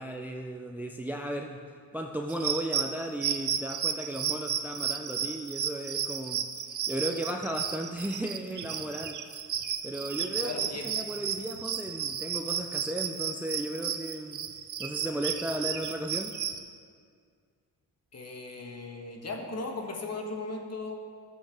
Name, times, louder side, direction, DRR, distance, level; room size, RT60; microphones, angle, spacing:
voice 1, 0.0-1.6 1.9-9.4 9.8-14.4 14.8-16.3, right 1 dB, 5° right, 2 dB, 0.6 m, -35 dB
sound 1, 2.3-16.6, right 8 dB, 50° right, 0.7 m, -33 dB
voice 2, 10.4-10.9 18.1-20.9, left 3 dB, 40° left, 2 dB, 1.4 m, -37 dB
13.0 x 7.8 x 3.6 m, 2.1 s
cardioid pair, 80°, 40 cm